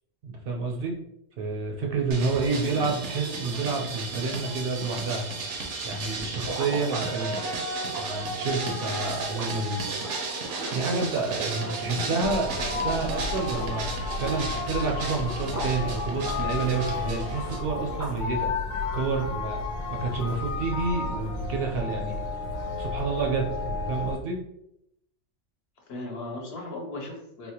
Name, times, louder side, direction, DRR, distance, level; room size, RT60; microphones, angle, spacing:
voice 1, 0.2-0.9 1.4-5.3 5.8-7.4 8.0-9.8 10.7-13.8 14.2-18.5 18.9-19.6 19.9-22.2 22.8-24.4, right 4 dB, 65° right, 1 dB, 0.7 m, -29 dB
sound 1, 2.1-17.6, right 3 dB, 85° right, 0.9 m, -34 dB
voice 2, 2.6-3.0 8.9-9.0 11.6-12.2 25.9-27.5, left 2 dB, 65° left, 0 dB, 0.9 m, -38 dB
sound 2, 6.4-13.0 13.3-13.8 14.1-15.8 16.1-18.3, right 2 dB, 25° right, 0.4 m, -40 dB
sound 3, 12.2-24.2, left 3 dB, 90° left, 0.9 m, -32 dB
3.4 x 2.1 x 2.8 m, 0.80 s
omnidirectional pair, 1.2 m